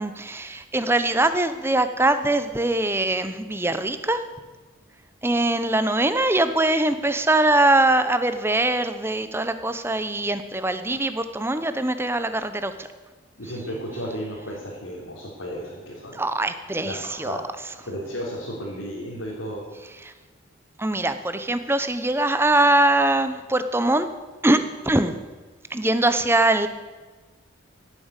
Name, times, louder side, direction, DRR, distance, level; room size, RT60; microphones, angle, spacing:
voice 1, 0.0-4.2 5.2-12.9 16.1-17.4 20.0-20.1 20.8-24.1 24.4-24.6 24.8-25.1 25.7-26.7, right 2 dB, 10° right, 10 dB, 0.8 m, -22 dB
voice 2, 13.4-16.2 16.8-17.4 17.9-19.6, equal, 85° left, -6 dB, 3.7 m, -33 dB
17.0 x 8.9 x 8.3 m, 1.3 s
head